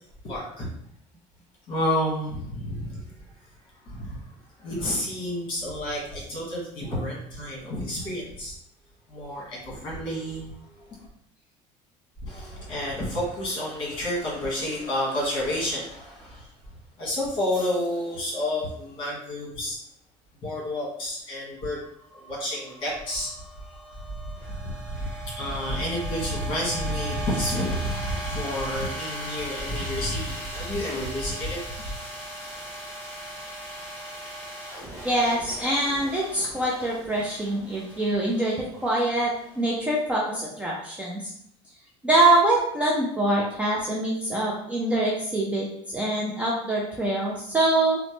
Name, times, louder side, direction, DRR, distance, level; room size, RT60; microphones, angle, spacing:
voice 1, 0.2-0.7 1.7-3.0 3.8-4.2 4.6-8.5 9.1-10.4 10.7-11.0 12.2-16.5 17.0-19.8 20.4-21.8 22.1-23.3 23.9-31.6, left 1 dB, 35° left, -5 dB, 1.4 m, -30 dB
sound 1, 21.6-39.9, right 1 dB, 15° left, 1.1 m, -39 dB
voice 2, 35.0-41.2 42.0-48.0, right 2 dB, 10° right, -4 dB, 0.3 m, -24 dB
2.9 x 2.1 x 3.0 m, 0.72 s
cardioid pair, 150°, 14 cm